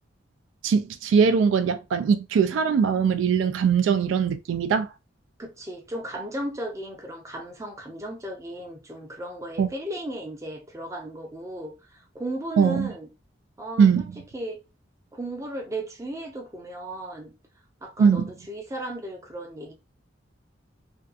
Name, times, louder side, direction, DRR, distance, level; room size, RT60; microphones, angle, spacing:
voice 1, 0.6-4.9 9.6-9.7 12.6-12.9 13.8-14.0 18.0-18.3, right 6 dB, 85° right, 0.3 m, -21 dB
voice 2, 5.4-13.1 13.6-14.0 14.3-14.6 15.1-17.3 17.8-19.7, right 1 dB, 15° right, 0.5 m, -35 dB
2.6 x 2.3 x 2.4 m
head